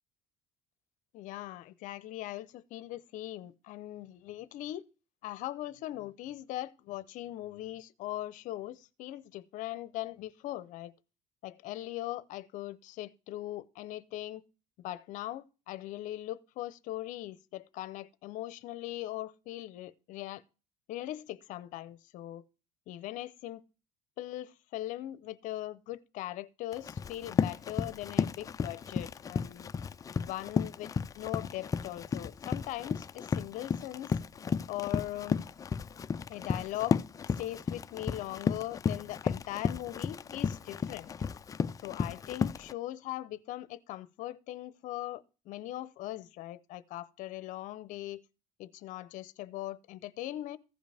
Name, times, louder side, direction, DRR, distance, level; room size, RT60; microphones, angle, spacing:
voice 1, 1.1-4.9 5.2-10.9 11.4-14.4 14.8-20.4 20.9-22.4 22.9-23.6 24.2-29.7 30.2-30.9 31.2-34.1 34.7-35.5 36.3-37.0 37.4-41.1 41.8-48.2 48.6-50.6, left 15 dB, 65° left, 0.7 m, -40 dB
Run, 26.7-42.7, left 6 dB, 25° left, 0.4 m, -33 dB
15.5 x 5.1 x 3.4 m
cardioid pair, 110°, 14 cm